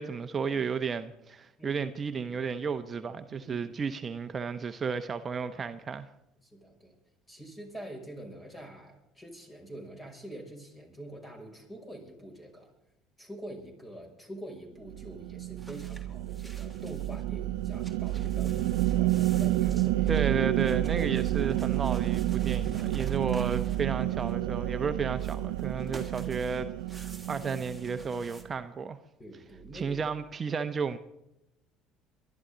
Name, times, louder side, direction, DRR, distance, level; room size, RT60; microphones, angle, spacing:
voice 1, 0.0-6.1 20.1-29.0 29.7-31.0, right 5 dB, 35° right, 0.9 m, -33 dB
voice 2, 3.0-3.7 6.4-7.0 7.3-12.7 13.2-20.2 29.2-30.0, right 1 dB, 20° left, 6.1 m, -45 dB
sound 1, 14.9-28.4, right 14 dB, 85° right, 0.6 m, -30 dB
sound 2, 15.6-17.2 17.6-24.6 25.1-28.4, right 2 dB, ahead, 3.2 m, -52 dB
23.5 x 12.0 x 3.9 m
hypercardioid pair, 75°, 0 cm